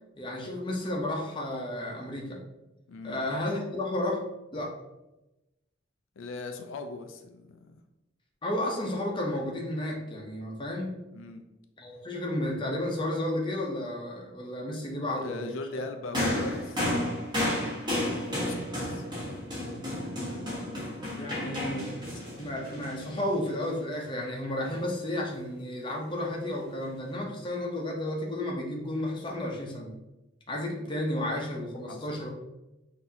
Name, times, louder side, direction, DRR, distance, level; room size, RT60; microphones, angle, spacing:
voice 1, 0.2-2.4 3.0-4.2 4.5-4.7 8.4-11.0 11.8-15.5 21.2-22.0 22.4-29.9 30.5-32.3, left 1 dB, 25° left, -1 dB, 0.7 m, -32 dB
voice 2, 2.9-3.2 6.2-7.8 11.1-11.4 15.1-16.9 18.3-19.0 31.9-32.2, left 3 dB, 80° left, 6 dB, 0.4 m, -40 dB
sound 1, 16.1-23.7 24.6-24.8, left 1 dB, 25° right, 1.3 m, -32 dB
5.8 x 2.7 x 2.7 m, 0.98 s
head